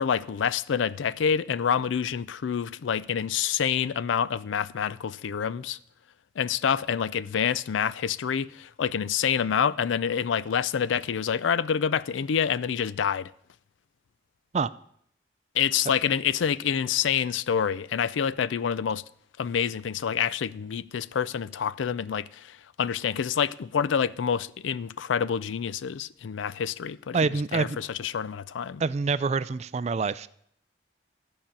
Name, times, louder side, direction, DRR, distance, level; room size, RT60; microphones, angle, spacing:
voice 1, 0.0-5.8 6.4-13.3 15.5-19.0 19.4-27.2 27.5-28.8, left 7 dB, 85° left, 0.4 m, -27 dB
voice 2, 27.1-27.8 28.8-30.3, right 4 dB, 35° right, 0.3 m, -26 dB
13.0 x 5.5 x 8.8 m
head